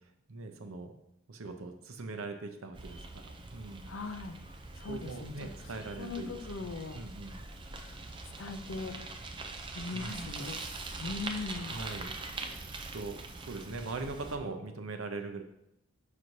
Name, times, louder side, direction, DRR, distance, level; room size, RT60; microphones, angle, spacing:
voice 1, 0.3-0.9 1.3-3.0 3.2-3.9 4.9-6.7 6.9-7.4 9.9-10.2 11.1-11.2 11.7-12.1 12.9-15.4, right 3 dB, 65° right, 6 dB, 0.7 m, -41 dB
Bicycle, 2.7-14.4, right 3 dB, 20° right, 0.4 m, -43 dB
voice 2, 3.8-4.4 4.8-5.5 6.0-7.0 7.3-7.4 8.4-8.9 9.7-10.6 11.0-11.8, left 3 dB, 60° left, 8 dB, 0.5 m, -39 dB
6.3 x 5.9 x 2.7 m, 0.80 s
head